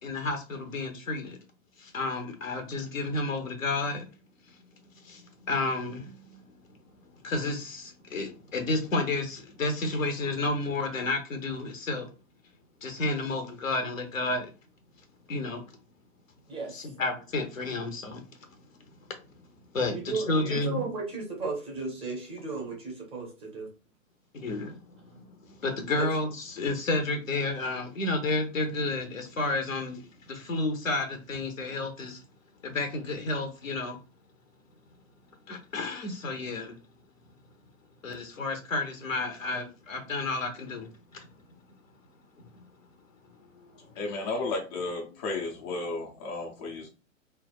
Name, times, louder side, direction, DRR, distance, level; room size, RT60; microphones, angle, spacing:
voice 1, 0.0-1.4 1.8-4.1 5.0-6.4 7.2-12.1 12.8-14.5 15.3-15.6 16.7-18.2 18.6-18.7 19.7-20.8 24.3-32.2 32.6-34.0 35.5-36.8 38.0-41.3 43.6-43.8 45.8-45.9, left 2 dB, 85° left, 0.8 m, -31 dB
voice 2, 16.5-16.9 19.9-23.7 26.0-26.1, right 3 dB, 15° right, 0.7 m, -35 dB
voice 3, 44.0-46.9, left 3 dB, 25° left, 0.4 m, -33 dB
3.2 x 2.0 x 2.4 m
figure-of-eight pair, 110°, 39 cm